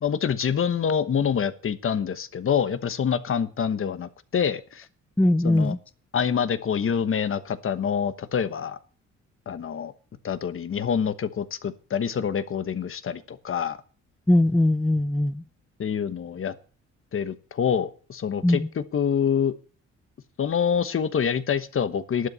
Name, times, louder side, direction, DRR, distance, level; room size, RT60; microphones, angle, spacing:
voice 1, 0.0-4.9 5.4-5.8 6.1-8.8 9.5-9.9 10.2-13.8 15.8-16.5 17.1-19.5 20.4-22.3, left 7 dB, 45° left, 1.2 m, -26 dB
voice 2, 5.2-5.8 14.3-15.4 18.4-18.7, left 1 dB, 5° left, 0.5 m, -20 dB
12.0 x 8.2 x 6.9 m
cardioid pair, 90°, 30 cm